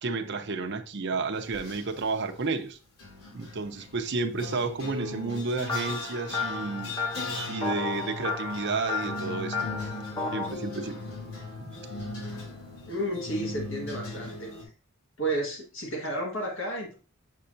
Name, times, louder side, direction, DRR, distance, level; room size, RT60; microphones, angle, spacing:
voice 1, 0.0-2.8 3.3-6.9 7.5-9.6 10.3-11.0 11.6-11.7, right 3 dB, 50° right, 0.7 m, -31 dB
sound 1, 1.5-2.0 3.0-14.6, left 2 dB, 90° left, 2.9 m, -39 dB
sound 2, 5.7-10.5, left 4 dB, 15° left, 1.1 m, -33 dB
voice 2, 12.9-14.5 15.2-16.9, right 1 dB, 60° left, 1.7 m, -32 dB
7.4 x 5.6 x 2.6 m
head